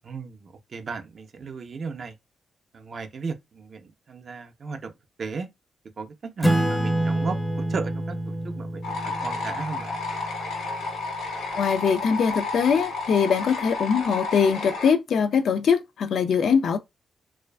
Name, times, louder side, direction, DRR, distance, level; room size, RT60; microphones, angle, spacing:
voice 1, 0.0-2.1 2.7-4.9 5.2-5.5 6.0-10.0, right 4 dB, 50° right, 0.4 m, -36 dB
Acoustic guitar / Strum, 6.4-11.4, right 1 dB, 5° left, 0.5 m, -28 dB
sound 1, 8.8-14.9, left 3 dB, 85° left, 0.8 m, -31 dB
voice 2, 11.6-16.8, left 6 dB, 65° left, 0.3 m, -22 dB
2.4 x 2.3 x 2.2 m
cardioid pair, 95°, 0 cm